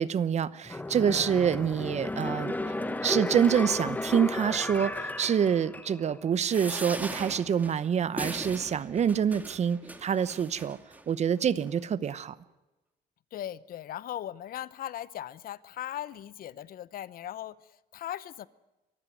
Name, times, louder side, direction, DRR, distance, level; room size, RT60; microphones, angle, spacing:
voice 1, 0.0-2.5 3.0-10.8 11.1-12.4, right 8 dB, 40° right, 0.9 m, -26 dB
sound 1, 0.7-6.2 6.6-6.7, left 2 dB, 10° left, 1.1 m, -34 dB
sound 2, 6.5-11.0 11.7-11.8 12.0-12.1, right 1 dB, 10° right, 1.9 m, -40 dB
voice 2, 13.3-18.5, left 12 dB, 60° left, 0.8 m, -38 dB
24.0 x 14.5 x 9.2 m
cardioid pair, 110°, 17 cm